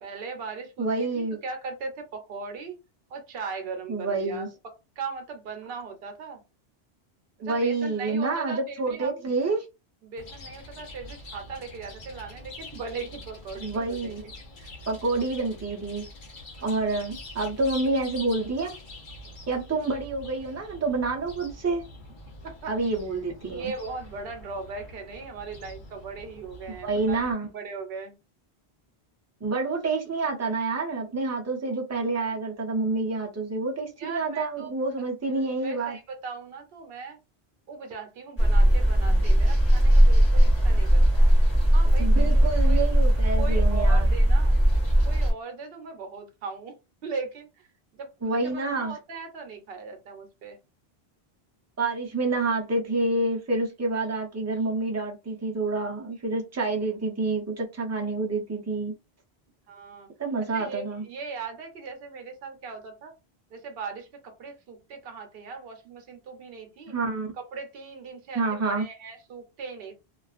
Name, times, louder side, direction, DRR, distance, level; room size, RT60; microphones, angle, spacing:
voice 1, 0.0-2.8 3.1-6.4 7.4-9.2 10.0-14.3 14.6-14.7 22.4-23.0 23.4-27.2 27.5-28.2 34.0-34.7 35.6-37.2 37.7-41.3 41.7-42.8 43.4-44.6 45.0-46.7 47.0-47.7 48.0-50.6 59.7-60.1 60.4-63.1 63.5-66.9 67.4-70.0, right 4 dB, 65° right, 0.9 m, -39 dB
voice 2, 0.8-1.4 3.9-4.5 7.4-9.6 13.5-14.2 14.9-16.0 16.6-18.8 19.5-21.8 22.7-23.7 26.7-27.5 29.4-36.0 42.0-44.1 48.2-49.0 51.8-59.0 60.2-61.0 66.9-67.3 68.4-68.9, right 3 dB, 20° right, 0.4 m, -28 dB
Chirp tweet, 10.2-27.3, left 2 dB, 55° left, 0.8 m, -45 dB
sound 1, 38.4-45.3, equal, 15° left, 1.2 m, -19 dB
2.4 x 2.3 x 2.4 m
omnidirectional pair, 1.1 m